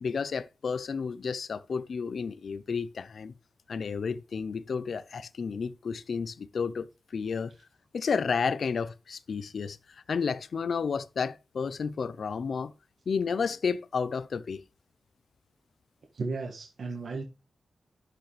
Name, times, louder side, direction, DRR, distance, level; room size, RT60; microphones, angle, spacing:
voice 1, 0.0-3.3 3.7-6.9 7.1-7.5 7.9-9.8 10.1-12.7 13.1-14.6, left 5 dB, 60° left, 0.7 m, -31 dB
voice 2, 16.1-17.2, right 3 dB, 60° right, 1.7 m, -34 dB
11.5 x 8.0 x 3.4 m
wide cardioid pair, 105°, 0 cm